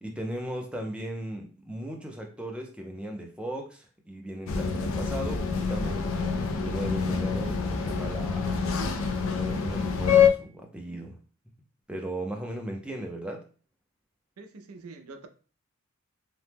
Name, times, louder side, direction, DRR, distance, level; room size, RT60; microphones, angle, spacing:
voice 1, 0.0-8.6 9.3-11.2 11.9-13.4, right 1 dB, 5° right, 0.4 m, -37 dB
sound 1, 4.5-10.3, left 6 dB, 65° left, 0.4 m, -26 dB
voice 2, 14.4-15.3, right 3 dB, 80° right, 0.5 m, -45 dB
2.8 x 2.1 x 3.4 m
head